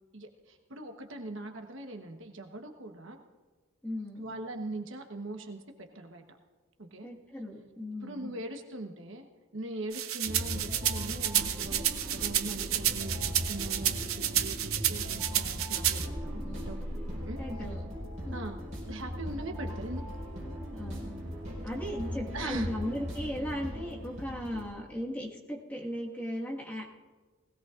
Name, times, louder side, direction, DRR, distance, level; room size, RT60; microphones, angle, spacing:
voice 1, 0.1-3.2 4.2-6.2 6.8-7.1 8.0-9.3 9.5-16.9 17.3-17.4 18.3-18.6 18.9-20.2 22.3-22.7, right 2 dB, 65° right, 4 dB, 1.1 m, -41 dB
voice 2, 3.8-4.4 7.0-8.3 16.4-16.8 17.4-17.8 18.2-18.3 20.7-21.1 21.6-26.8, equal, 10° left, -3 dB, 1.6 m, -37 dB
sound 1, 9.9-16.1, right 11 dB, 80° right, 0.7 m, -30 dB
sound 2, 10.2-24.6, equal, 35° right, 4.6 m, -38 dB
20.0 x 16.5 x 2.5 m, 1.3 s
head